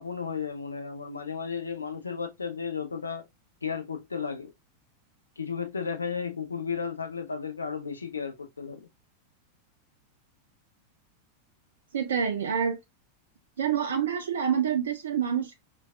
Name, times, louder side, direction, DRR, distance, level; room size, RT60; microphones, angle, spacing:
voice 1, 0.0-3.2 3.6-4.5 5.4-8.9, left 6 dB, 75° left, 0.5 m, -34 dB
voice 2, 11.9-12.8 13.6-15.5, right 8 dB, 65° right, 0.4 m, -27 dB
4.5 x 2.3 x 2.3 m
figure-of-eight pair, 90°, 0 cm